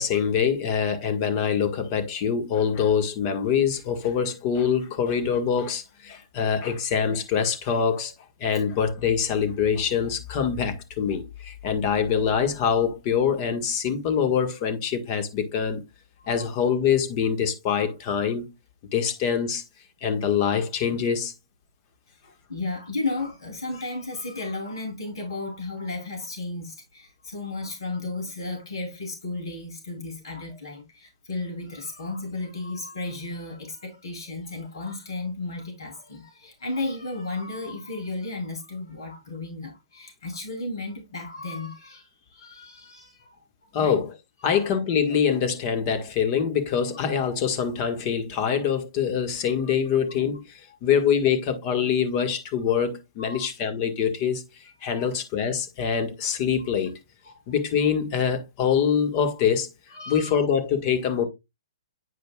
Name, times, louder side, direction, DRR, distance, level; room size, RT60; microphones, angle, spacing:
voice 1, 0.0-8.1 8.4-15.8 16.3-18.4 18.9-19.6 20.0-21.3 43.7-44.1 44.4-54.4 54.8-56.9 57.5-59.7 60.1-61.3, left 7 dB, 35° left, 1.6 m, -24 dB
voice 2, 22.2-43.4 43.8-44.0 44.4-44.7 49.8-49.9 53.2-53.4 54.9-55.1 57.3-57.4 59.9-60.3, left 2 dB, 65° left, 3.3 m, -34 dB
9.6 x 5.0 x 2.3 m
figure-of-eight pair, 125°, 3 cm